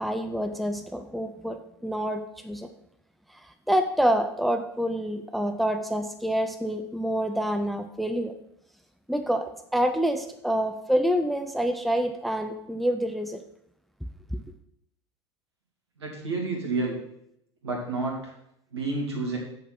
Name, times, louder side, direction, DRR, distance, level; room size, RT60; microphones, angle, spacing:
voice 1, 0.0-2.7 3.3-8.3 9.1-13.4, equal, ahead, 7 dB, 0.7 m, -27 dB
voice 2, 16.0-17.0 17.6-18.1 18.7-19.4, right 3 dB, 70° right, 0 dB, 2.8 m, -29 dB
7.3 x 6.7 x 6.1 m, 0.76 s
figure-of-eight pair, 75°, 14 cm